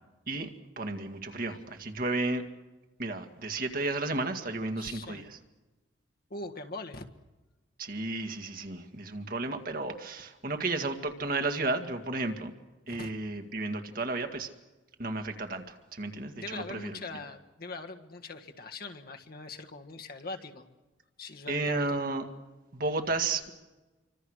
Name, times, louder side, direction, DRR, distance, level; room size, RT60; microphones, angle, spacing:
voice 1, 0.8-2.5 3.0-5.4 7.8-12.5 12.9-14.5 15.0-17.2 21.5-22.3 22.7-23.5, right 2 dB, 50° right, 6 dB, 2.0 m, -33 dB
voice 2, 4.8-5.3 6.3-7.0 12.9-13.1 16.3-20.7 21.2-22.0, left 3 dB, 55° left, 4 dB, 1.7 m, -42 dB
27.0 x 25.0 x 6.5 m, 1.1 s
head